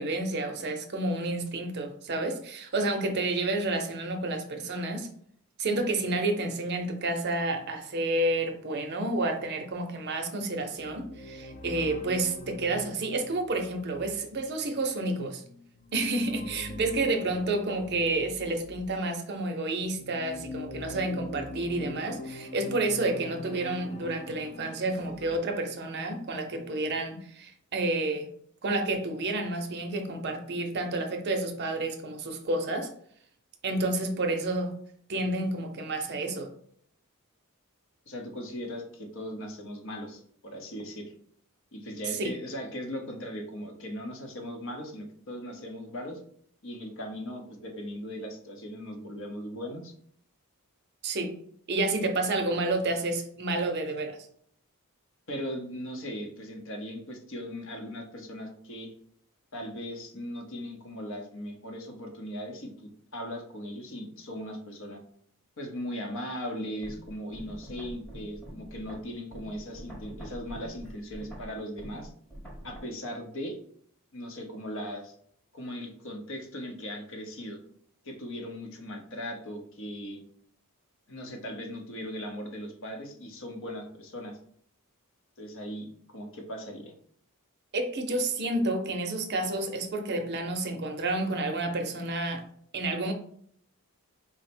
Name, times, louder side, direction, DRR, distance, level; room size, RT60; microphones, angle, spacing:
voice 1, 0.0-5.1 5.6-15.4 15.9-28.3 28.6-32.9 33.6-34.8 35.1-36.5 42.1-42.4 51.0-51.3 51.7-54.2 87.7-92.4 92.7-93.1, right 2 dB, 50° right, 0.6 m, -30 dB
sound 1, 10.6-19.1 19.7-25.4, left 2 dB, 35° left, 0.3 m, -43 dB
voice 2, 38.1-41.1 41.7-46.2 46.6-49.9 55.3-58.9 59.5-62.7 63.1-65.0 65.6-72.1 72.6-73.6 74.1-75.2 75.5-77.6 78.0-80.2 81.1-84.4 85.4-86.9, equal, 60° left, 0.8 m, -38 dB
sound 2, 66.8-72.8, right 1 dB, 5° left, 0.9 m, -45 dB
4.2 x 2.1 x 4.2 m
head